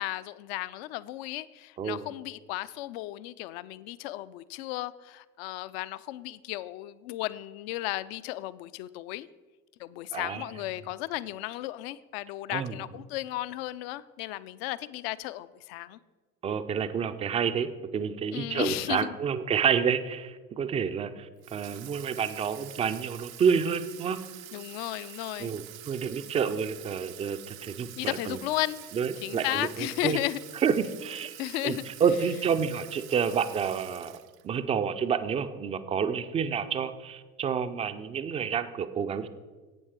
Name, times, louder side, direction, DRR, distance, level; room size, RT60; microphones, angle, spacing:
voice 1, 0.0-9.3 9.8-16.0 18.3-19.2 24.5-25.5 28.0-28.9 29.2-30.4 31.4-31.8, left 16 dB, 45° left, 17 dB, 0.5 m, -34 dB
voice 2, 10.1-10.4 12.5-12.8 16.4-24.2 25.4-28.4 28.9-30.2 30.6-34.2 34.4-39.3, right 7 dB, 15° right, 10 dB, 0.4 m, -29 dB
Water tap faucet / Sink (filling or washing), 21.4-34.6, right 14 dB, 65° right, 0.6 m, -47 dB
11.5 x 8.6 x 4.5 m, 1.3 s
figure-of-eight pair, 70°, 44 cm